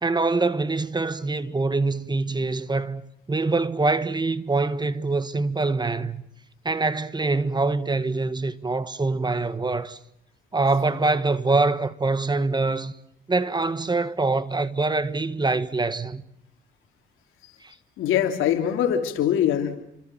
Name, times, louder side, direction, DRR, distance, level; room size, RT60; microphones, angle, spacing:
voice 1, 0.0-3.0 3.3-6.2 6.6-10.0 10.5-12.9 13.3-16.2 17.6-17.7, right 3 dB, 20° right, 1.4 m, -24 dB
voice 2, 18.0-19.8, left 10 dB, 85° left, 3.1 m, -22 dB
29.0 x 26.0 x 7.6 m
cardioid pair, 90°, 20 cm